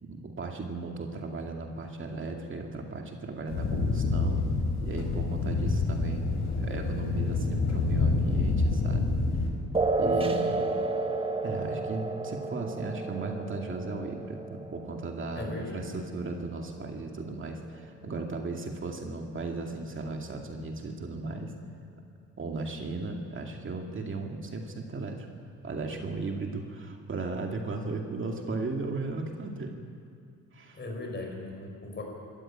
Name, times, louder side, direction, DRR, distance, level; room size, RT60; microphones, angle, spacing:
voice 1, 0.0-4.4 4.8-6.3 6.6-9.2 10.0-10.5 11.4-21.5 22.4-25.3 25.6-29.8 30.5-30.8, right 3 dB, 40° right, 2 dB, 2.4 m, -36 dB
sound 1, 3.5-9.5, left 3 dB, 70° left, 4.0 m, -27 dB
sound 2, 9.7-16.8, right 3 dB, 20° right, 1.7 m, -32 dB
voice 2, 10.0-10.6 15.4-15.8 30.7-32.0, left 2 dB, 35° left, 1 dB, 5.7 m, -38 dB
25.0 x 13.5 x 8.8 m, 2.3 s
cardioid pair, 90°, 30 cm